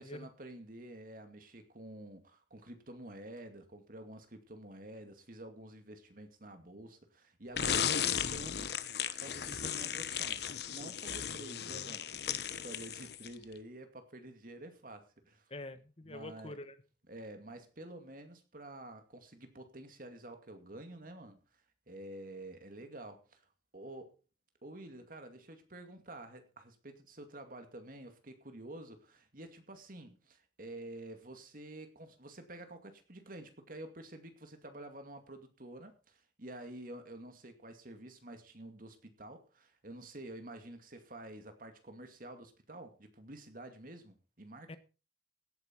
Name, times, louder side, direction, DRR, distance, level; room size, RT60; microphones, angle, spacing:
voice 1, 0.0-8.7 9.2-15.5 16.1-16.6 17.1-21.4 21.9-23.4 23.7-24.1 24.6-44.7, right 1 dB, 50° right, 2.4 m, -49 dB
sound 1, 7.6-13.4, left 8 dB, 65° left, 1.0 m, -35 dB
voice 2, 15.5-16.8 44.7-44.8, left 2 dB, 35° left, 1.1 m, -45 dB
17.0 x 9.4 x 4.6 m
head